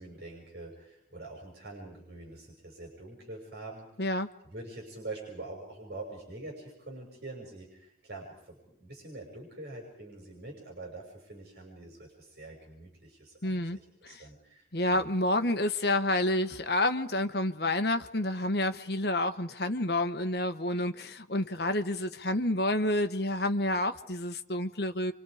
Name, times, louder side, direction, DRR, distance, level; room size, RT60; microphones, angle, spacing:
voice 1, 0.0-4.1 4.4-13.8 14.1-15.1, right 2 dB, 55° right, -2 dB, 6.6 m, -45 dB
voice 2, 13.4-13.8 14.0-14.2 14.7-25.1, left 1 dB, 55° left, 8 dB, 1.4 m, -29 dB
29.0 x 25.5 x 5.1 m, 0.74 s
head